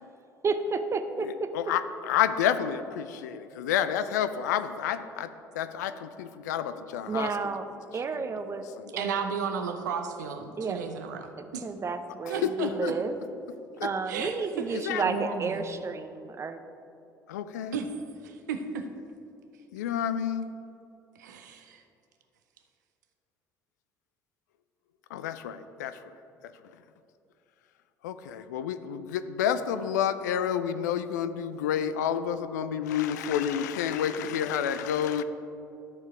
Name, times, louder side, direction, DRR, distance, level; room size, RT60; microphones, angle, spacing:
voice 1, 0.4-1.3 7.1-7.6 7.9-8.7 8.9-9.3 10.6-10.8 11.4-13.2 13.8-16.6, right 4 dB, 30° right, 8 dB, 0.6 m, -31 dB
voice 2, 1.2-5.3 5.6-7.3 8.1-8.2 8.8-8.9 12.3-12.9 13.8-13.9 14.7-15.0 17.3-17.8 19.7-20.5 25.1-26.0 28.0-35.2, left 9 dB, 70° left, 11 dB, 0.4 m, -29 dB
voice 3, 9.0-11.6 12.3-12.7 14.1-15.7 17.7-18.8 21.2-21.8, right 6 dB, 70° right, 6 dB, 0.7 m, -34 dB
13.0 x 4.6 x 4.8 m, 2.7 s
figure-of-eight pair, 55°, 10 cm